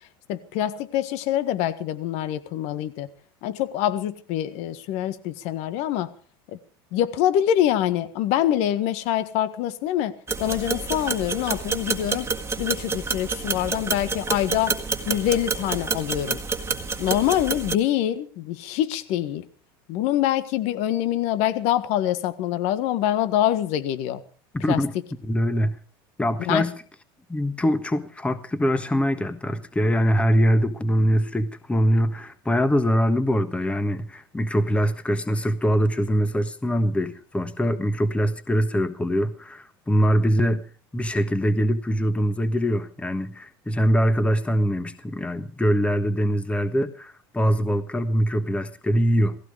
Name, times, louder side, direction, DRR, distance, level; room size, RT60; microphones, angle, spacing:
voice 1, 0.3-3.1 3.4-6.1 6.5-6.6 6.9-12.3 12.6-14.7 15.1-16.4 17.0-19.4 19.9-24.2 24.7-24.8 26.5-26.7, left 12 dB, 60° left, 13 dB, 1.6 m, -25 dB
sound 1, 10.3-17.8, right 4 dB, 20° right, 1.8 m, -28 dB
voice 2, 24.5-24.9 25.2-25.8 26.2-26.7 27.3-40.6 40.9-49.4, equal, 10° left, 11 dB, 1.4 m, -23 dB
17.5 x 16.0 x 4.9 m, 0.42 s
hypercardioid pair, 95°, 13 cm